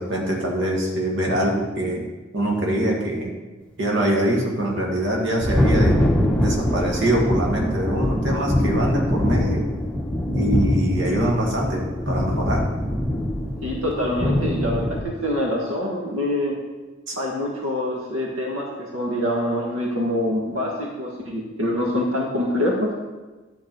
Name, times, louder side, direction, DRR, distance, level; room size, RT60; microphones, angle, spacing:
voice 1, 0.0-2.0 2.3-3.4 3.8-6.0 6.4-9.6 10.3-12.6 17.1-17.2, right 1 dB, 60° right, -1 dB, 1.9 m, -24 dB
Thunder, 4.9-15.0, equal, 5° left, 0.9 m, -23 dB
voice 2, 13.6-16.6 17.2-18.7 18.9-22.9, left 1 dB, 80° right, -1 dB, 1.6 m, -25 dB
11.0 x 7.0 x 4.5 m, 1.2 s
head